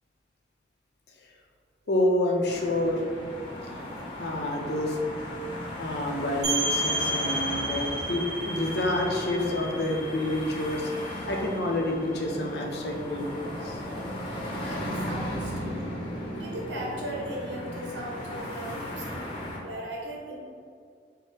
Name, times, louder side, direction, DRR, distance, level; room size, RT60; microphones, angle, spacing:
voice 1, 1.9-3.0 3.7-3.8 4.2-5.0 5.8-10.9 11.3-13.8, left 1 dB, 65° left, 1 dB, 0.6 m, -28 dB
sound 1, 2.4-19.6, left 1 dB, 30° left, 0.7 m, -36 dB
sound 2, 6.4-11.9, right 1 dB, 45° right, 1.2 m, -32 dB
voice 2, 14.6-15.9 16.3-19.2 19.6-20.4, right 1 dB, 85° right, -3 dB, 0.8 m, -37 dB
5.4 x 2.1 x 3.3 m, 2.2 s
head